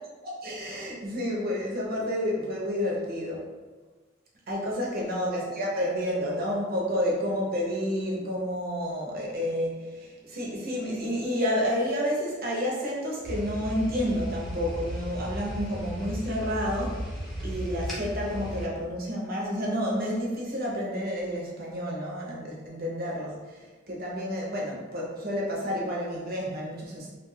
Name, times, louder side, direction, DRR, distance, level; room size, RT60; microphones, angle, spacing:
voice 1, 0.4-3.4 4.5-17.1 17.4-23.4 23.9-27.1, equal, 50° right, -3 dB, 0.7 m, -30 dB
sound 1, 13.2-18.7, equal, ahead, 0.6 m, -35 dB
3.3 x 2.4 x 2.3 m, 1.3 s
head